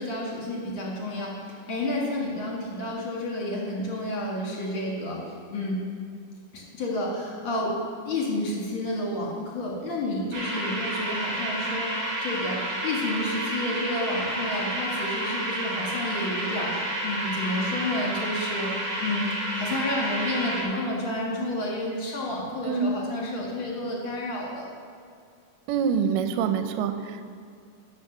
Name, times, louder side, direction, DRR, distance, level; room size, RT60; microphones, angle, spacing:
voice 1, 0.0-5.8 6.5-7.8 8.1-11.9 12.2-18.7 19.0-24.7, left 1 dB, 45° left, -3 dB, 2.1 m, -30 dB
sound 1, 10.3-20.6, right 1 dB, 55° right, 3.1 m, -30 dB
voice 2, 25.7-27.3, right 6 dB, 90° right, 8 dB, 2.2 m, -26 dB
11.5 x 4.5 x 6.7 m, 2.3 s
omnidirectional pair, 3.8 m